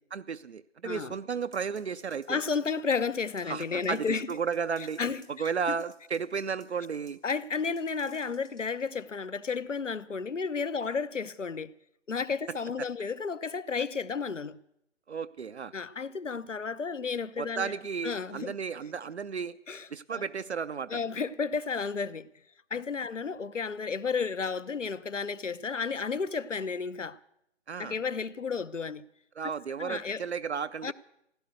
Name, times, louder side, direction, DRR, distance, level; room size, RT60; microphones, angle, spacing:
voice 1, 0.1-2.4 3.5-5.0 5.3-7.2 12.5-12.9 15.1-15.7 17.4-19.6 19.9-21.0 27.7-28.0 29.4-30.9, right 6 dB, 65° right, 0.6 m, -34 dB
sound 1, 1.5-8.8, right 3 dB, 90° right, 3.9 m, -59 dB
voice 2, 2.3-4.3 5.0-5.2 7.2-11.7 12.1-14.6 15.7-17.7 18.0-18.5 19.7-20.2 20.9-22.3 22.7-27.2 27.8-29.0 29.8-30.2 30.8-30.9, left 5 dB, 85° left, 0.8 m, -32 dB
16.0 x 11.5 x 8.0 m
figure-of-eight pair, 145°, 36 cm